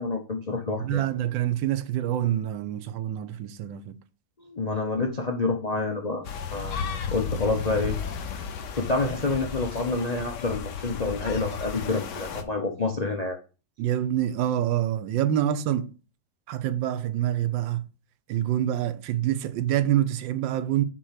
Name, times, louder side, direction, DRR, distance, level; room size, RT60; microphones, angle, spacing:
voice 1, 0.0-1.0 4.4-7.9 8.7-13.4, left 3 dB, 35° left, 0.6 m, -28 dB
voice 2, 0.8-4.0 13.8-15.9 16.5-17.9 18.3-20.8, right 11 dB, 90° right, 1.4 m, -26 dB
sound 1, 6.2-12.4, left 6 dB, 70° left, 1.5 m, -34 dB
6.7 x 4.5 x 5.8 m
omnidirectional pair, 2.0 m